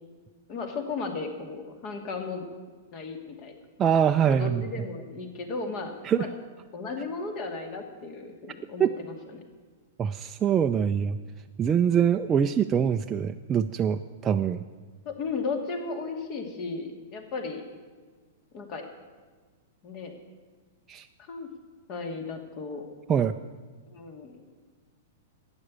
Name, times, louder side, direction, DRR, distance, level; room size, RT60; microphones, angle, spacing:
voice 1, 0.5-2.5 2.9-3.5 4.3-6.3 6.7-9.4 12.3-12.4 15.0-17.6 18.5-18.8 19.8-20.1 21.2-21.5 21.9-22.8 23.9-24.4, left 4 dB, 40° left, 5 dB, 2.4 m, -35 dB
voice 2, 3.8-4.6 6.0-6.3 8.8-8.9 10.0-11.2 11.6-14.6 20.9-21.0 23.1-23.3, right 8 dB, 25° right, 5 dB, 0.5 m, -24 dB
12.0 x 9.1 x 8.6 m, 1.4 s
hypercardioid pair, 105°, 0 cm